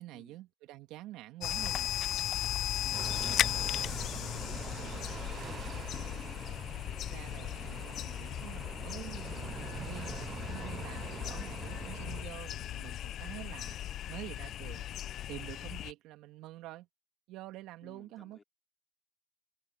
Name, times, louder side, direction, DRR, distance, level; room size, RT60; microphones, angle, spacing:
voice 1, 0.0-1.9 6.8-13.8 14.1-14.8 15.3-16.9 17.3-18.4, right 16 dB, 50° right, 2.2 m, -47 dB
sound 1, 1.4-15.9, left 11 dB, 40° left, 0.6 m, -37 dB
voice 2, 2.7-3.5 4.1-5.8 17.8-18.4, left 4 dB, 15° left, 4.4 m, -57 dB
sound 2, 2.9-12.2, right 8 dB, 30° right, 0.5 m, -45 dB
supercardioid pair, 125°, 0 cm